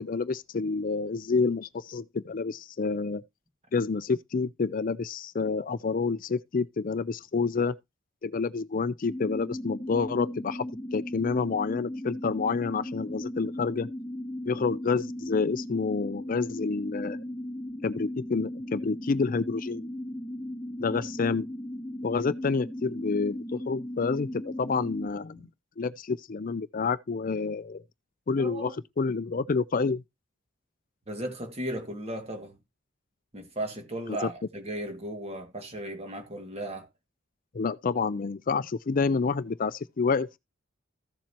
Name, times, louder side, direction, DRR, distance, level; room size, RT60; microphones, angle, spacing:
voice 1, 0.0-3.2 3.7-7.7 8.2-10.7 10.9-13.9 14.5-17.2 17.8-19.9 20.8-21.5 22.0-25.4 25.8-27.8 28.3-28.7 29.0-30.0 34.2-34.3 37.5-40.4, left 4 dB, 45° left, 0.4 m, -28 dB
sound 1, 9.1-25.1, left 1 dB, 5° left, 1.4 m, -37 dB
voice 2, 28.4-28.7 31.1-32.6 33.3-36.9, right 1 dB, 30° right, 2.1 m, -36 dB
14.5 x 7.3 x 2.9 m
head